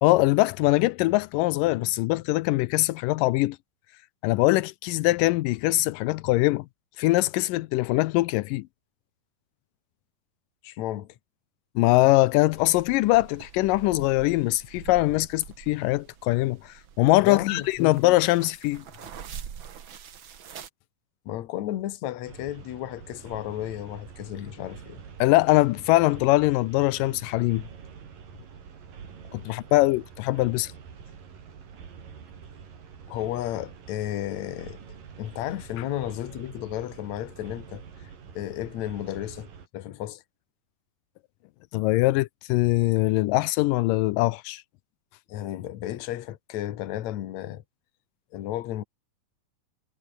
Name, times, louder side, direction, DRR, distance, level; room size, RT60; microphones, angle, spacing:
voice 1, 0.0-3.6 4.2-6.7 7.0-8.7 11.8-18.8 25.2-27.6 29.3-30.7 41.7-44.6, left 19 dB, 85° left, 2.3 m, -22 dB
voice 2, 10.6-11.2 17.2-18.1 21.3-25.0 33.1-34.8 35.2-40.2 45.3-47.6 48.3-48.8, left 13 dB, 65° left, 2.3 m, -33 dB
sound 1, 12.5-20.7, right 8 dB, 45° right, 1.9 m, -45 dB
sound 2, 22.2-39.7, right 7 dB, 90° right, 5.2 m, -46 dB
omnidirectional pair, 3.8 m